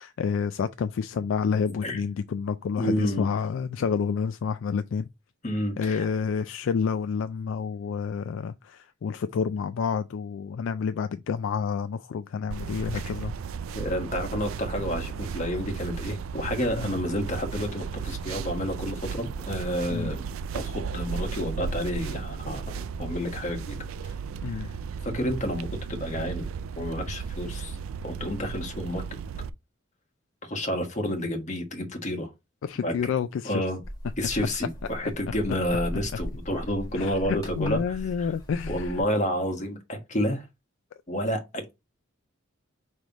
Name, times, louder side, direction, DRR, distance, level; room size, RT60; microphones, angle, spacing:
voice 1, 0.0-5.1 5.8-13.3 16.8-17.0 19.9-20.1 24.4-24.7 32.6-33.7 36.9-39.0, left 6 dB, 65° left, 0.3 m, -29 dB
voice 2, 2.8-3.3 5.4-6.1 12.9-13.1 13.7-20.2 20.5-23.8 24.4-24.7 25.0-26.5 26.8-27.8 28.0-29.0 30.4-32.3 32.8-32.9 33.4-33.8 34.2-38.0 38.7-40.4 41.1-41.7, equal, 35° left, 1.4 m, -30 dB
sound 1, 12.5-29.5, right 6 dB, 85° right, 0.4 m, -35 dB
sound 2, 33.8-39.0, equal, 20° left, 1.7 m, -38 dB
5.3 x 3.3 x 3.0 m
head